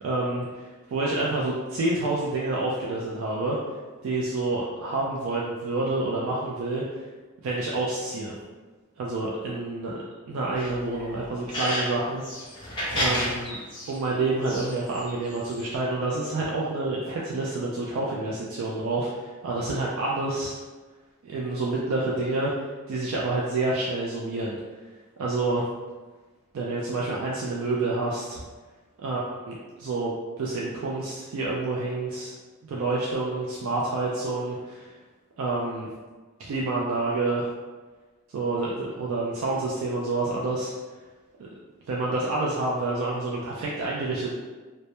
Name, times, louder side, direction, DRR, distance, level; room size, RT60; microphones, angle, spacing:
voice 1, 0.0-3.6 4.0-7.0 7.4-8.4 9.0-10.0 10.2-12.2 12.6-12.7 12.9-13.6 13.9-20.6 21.2-24.6 25.2-25.6 26.5-28.4 29.0-32.3 32.6-35.0 35.4-35.9 36.5-37.5 38.3-40.7 41.4-41.5 41.9-44.3, right 2 dB, 75° right, -4 dB, 0.3 m, -28 dB
sound 1, 10.5-11.8 12.2-14.0 14.4-15.8, left 1 dB, 20° left, 0.5 m, -31 dB
2.1 x 2.0 x 2.8 m, 1.3 s
head